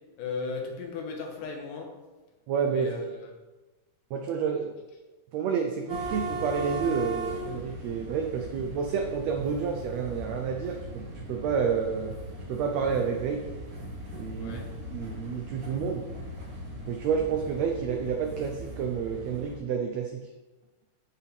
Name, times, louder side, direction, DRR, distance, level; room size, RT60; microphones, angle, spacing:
voice 1, 0.2-1.9 2.7-3.3 4.3-4.4 14.4-14.7, left 4 dB, 85° left, 1 dB, 2.8 m, -36 dB
voice 2, 2.5-2.9 4.1-4.7 5.3-12.1 12.5-13.4 14.1-14.6 14.9-16.0 16.9-20.3, right 6 dB, 85° right, 2 dB, 1.5 m, -29 dB
sound 1, 5.9-19.6, right 1 dB, 65° right, 3.1 m, -39 dB
11.0 x 4.6 x 3.5 m, 1.2 s
omnidirectional pair, 3.7 m